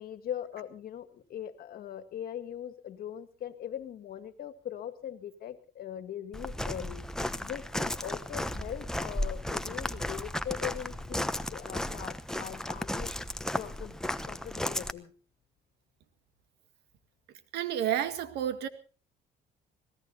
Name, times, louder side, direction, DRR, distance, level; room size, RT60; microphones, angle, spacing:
voice 1, 0.0-13.1 13.5-14.0 14.3-15.1, left 10 dB, 60° left, 9 dB, 2.0 m, -41 dB
Walk footsteps, 6.3-14.9, left 1 dB, 5° left, 1.0 m, -34 dB
voice 2, 17.5-18.7, right 10 dB, 80° right, 12 dB, 1.9 m, -30 dB
26.0 x 18.0 x 2.8 m, 0.37 s
cardioid pair, 110°, 17 cm